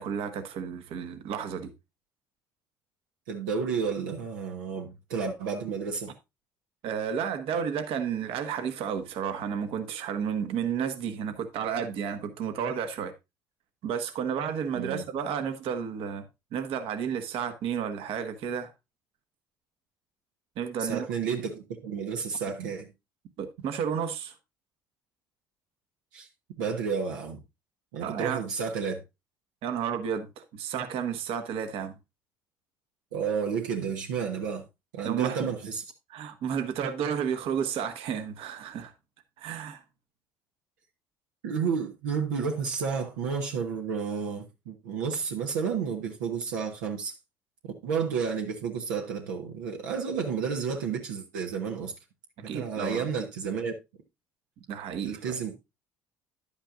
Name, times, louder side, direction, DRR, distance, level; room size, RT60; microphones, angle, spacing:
voice 1, 0.0-1.7 6.8-13.1 13.8-18.7 20.6-21.1 23.4-24.3 28.0-28.4 29.6-31.9 35.0-35.5 36.1-38.9 39.4-39.8 52.5-53.1 54.7-55.3, right 7 dB, 65° right, 1.4 m, -32 dB
voice 2, 3.3-6.1 14.7-15.0 20.8-22.9 26.1-26.3 26.6-27.4 27.9-29.0 33.1-34.6 34.9-35.8 41.4-47.1 47.8-51.9 52.4-53.7 55.0-55.5, right 6 dB, 85° right, 1.2 m, -31 dB
10.5 x 8.7 x 2.5 m
hypercardioid pair, 70°, 10 cm